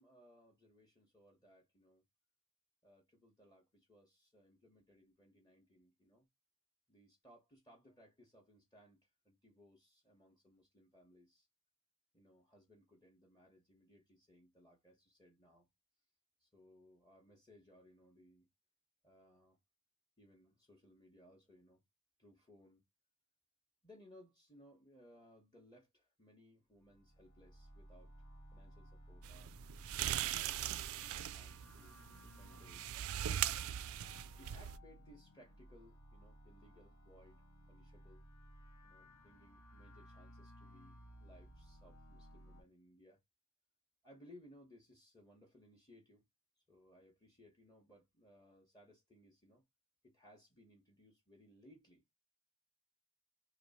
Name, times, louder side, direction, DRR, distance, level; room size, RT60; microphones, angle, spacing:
voice 1, 0.0-2.0 2.8-6.3 6.9-11.5 12.1-15.7 16.4-18.5 19.0-19.6 20.2-21.8 22.2-22.8 23.8-28.1 28.5-29.6 30.3-33.7 34.4-37.4 37.7-38.2 38.8-43.2 44.0-46.2 46.7-49.6 50.0-52.1, equal, 15° left, 1.2 m, -64 dB
sound 1, 26.7-42.6, equal, 80° left, 1.4 m, -58 dB
sound 2, 29.2-34.8, right 11 dB, 70° right, 0.3 m, -40 dB
3.1 x 3.1 x 4.1 m
head